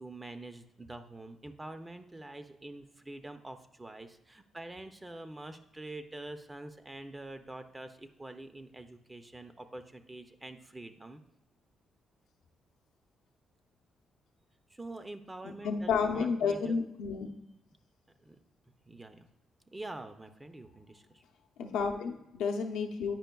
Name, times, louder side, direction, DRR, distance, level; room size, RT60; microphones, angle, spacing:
voice 1, 0.0-11.2 14.7-16.8 18.2-18.4 18.9-19.3 19.7-21.2, right 2 dB, 20° right, 8 dB, 0.4 m, -46 dB
voice 2, 15.4-17.3 21.6-23.2, left 5 dB, 90° left, 3 dB, 0.6 m, -31 dB
9.0 x 5.0 x 2.2 m, 0.87 s
cardioid pair, 70°, 0 cm